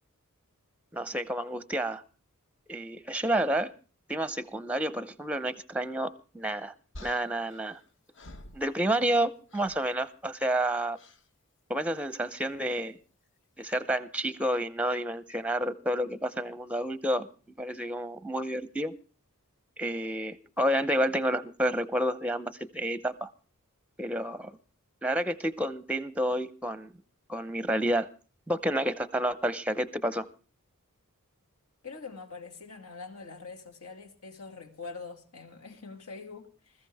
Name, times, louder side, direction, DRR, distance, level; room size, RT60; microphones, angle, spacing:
voice 1, 0.9-2.0 2.7-3.7 4.1-6.7 7.0-7.8 8.5-11.0 11.7-13.0 13.6-17.3 17.6-18.9 19.8-23.3 24.0-24.6 25.0-26.9 27.3-28.1 28.5-30.3, right 1 dB, 5° right, 0.6 m, -30 dB
sound 1, 6.9-9.2 9.5-9.9 10.9-11.3 12.6-12.9, left 1 dB, 55° left, 1.1 m, -50 dB
voice 2, 31.8-36.7, left 4 dB, 80° left, 2.2 m, -44 dB
20.5 x 14.0 x 3.5 m
head